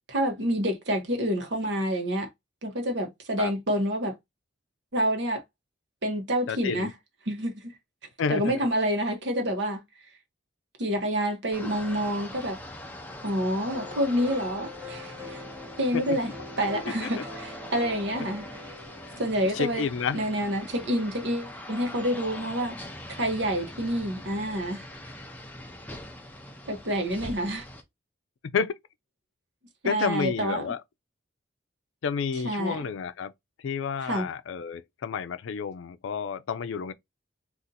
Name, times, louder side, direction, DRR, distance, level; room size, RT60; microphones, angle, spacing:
voice 1, 0.1-2.3 2.6-4.1 4.9-5.4 6.0-6.9 7.3-7.7 8.3-9.8 10.8-12.6 13.2-15.4 15.8-16.3 16.6-18.5 19.2-19.9 20.1-22.8 23.1-24.8 26.7-27.7 29.8-30.7 32.4-32.8 34.0-34.3, equal, 65° right, 1.0 m, -28 dB
voice 2, 6.5-6.9 8.2-8.7 15.9-16.2 16.8-17.1 19.1-19.2 19.5-20.2 28.5-28.7 29.8-30.8 32.0-33.3 33.6-36.9, left 6 dB, 85° left, 0.4 m, -30 dB
sound 1, 11.5-27.8, left 1 dB, 10° left, 0.5 m, -42 dB
sound 2, 13.7-19.6, left 2 dB, 10° right, 0.9 m, -43 dB
2.7 x 2.4 x 3.9 m
head